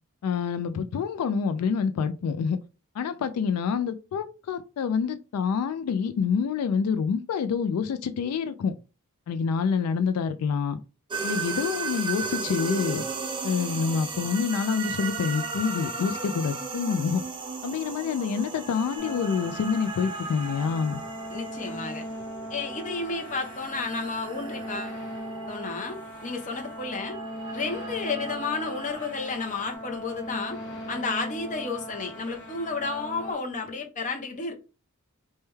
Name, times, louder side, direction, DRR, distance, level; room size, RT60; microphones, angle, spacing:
voice 1, 0.2-2.6 2.9-8.7 9.3-10.8 11.2-13.0 13.4-17.2 17.6-21.0, left 6 dB, 85° left, 0.3 m, -27 dB
sound 1, 11.1-29.7, right 4 dB, 20° right, 0.5 m, -36 dB
sound 2, 19.0-33.3, equal, 55° left, 0.9 m, -39 dB
voice 2, 21.3-22.0 22.5-25.0 25.5-27.2 27.5-30.6 30.9-34.5, left 4 dB, 35° left, 0.6 m, -32 dB
3.3 x 2.2 x 3.1 m
head